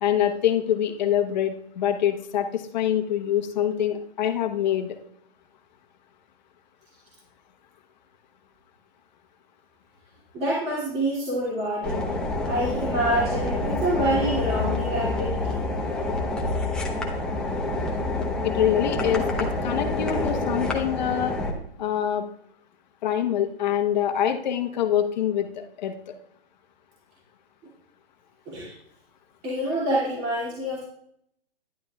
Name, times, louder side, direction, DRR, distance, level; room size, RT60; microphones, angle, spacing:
voice 1, 0.0-5.0 18.4-21.4 21.8-22.2 23.0-26.1, left 10 dB, 45° left, 5 dB, 1.1 m, -25 dB
voice 2, 10.3-12.0 12.5-15.7 28.5-28.7 29.4-30.8, right 1 dB, 20° right, -7 dB, 2.6 m, -27 dB
sound 1, 11.8-21.5, left 2 dB, 5° left, 0.9 m, -27 dB
12.0 x 10.5 x 2.4 m, 0.68 s
hypercardioid pair, 145°, 31 cm